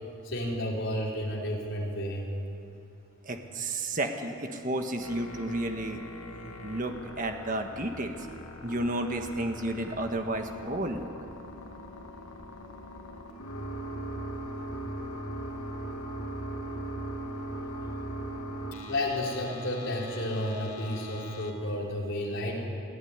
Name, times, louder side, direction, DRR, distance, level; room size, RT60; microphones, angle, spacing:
voice 1, 0.2-2.3 18.9-22.6, left 1 dB, 55° left, -2 dB, 4.2 m, -32 dB
voice 2, 3.3-6.0 6.6-8.1 8.6-11.0, right 1 dB, 35° right, 5 dB, 1.6 m, -32 dB
sound 1, 5.0-21.5, right 1 dB, 80° left, 2.0 m, -40 dB
22.0 x 15.5 x 9.7 m, 2.8 s
head